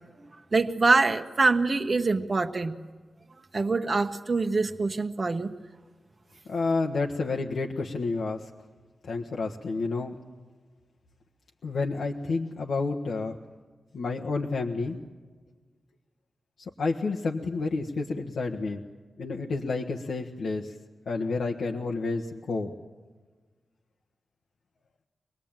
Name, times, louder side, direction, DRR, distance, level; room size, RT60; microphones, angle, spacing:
voice 1, 0.2-2.8 3.5-5.5, right 3 dB, 30° right, 5 dB, 1.0 m, -25 dB
voice 2, 6.4-8.5 9.0-10.2 11.6-13.4 13.9-15.0 16.6-18.8 19.2-20.8 21.0-22.7, left 3 dB, 90° left, 1 dB, 1.4 m, -30 dB
25.0 x 20.0 x 8.9 m, 1.4 s
wide cardioid pair, 150°, 0 cm